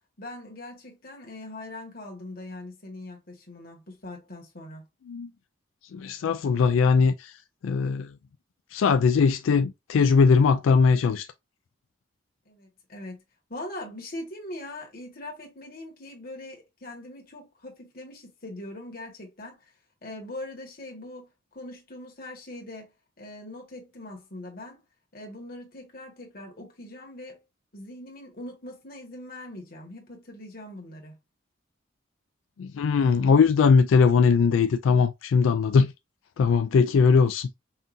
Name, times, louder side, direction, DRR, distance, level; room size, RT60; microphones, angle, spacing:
voice 1, 0.2-4.8 12.4-13.2 13.5-19.6 20.0-22.9 23.2-24.8 25.1-27.4 27.7-31.2, left 1 dB, 50° left, 1.6 m, -41 dB
voice 2, 5.9-7.4 7.6-8.1 8.7-11.3 32.6-35.9 36.4-37.5, left 5 dB, 85° left, 0.3 m, -20 dB
5.6 x 2.7 x 2.6 m
head